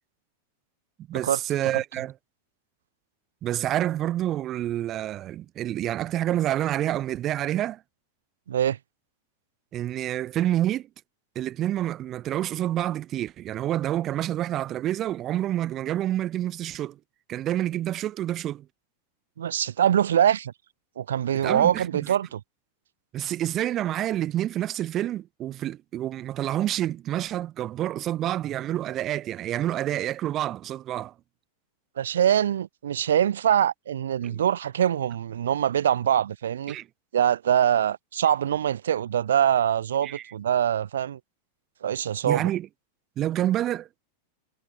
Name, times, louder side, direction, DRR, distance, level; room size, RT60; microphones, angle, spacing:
voice 1, 1.1-2.1 3.4-7.8 9.7-10.9 11.3-17.0 17.3-18.6 21.4-22.1 23.1-31.1 34.2-34.4 36.7-36.8 40.0-40.2 42.2-42.7 43.2-43.9, right 12 dB, 30° right, 1.6 m, -28 dB
voice 2, 8.5-8.8 19.4-20.5 21.0-22.4 32.0-36.8 37.1-41.2 41.8-42.5, right 9 dB, 65° right, 2.9 m, -23 dB
figure-of-eight pair, 90°, 0 cm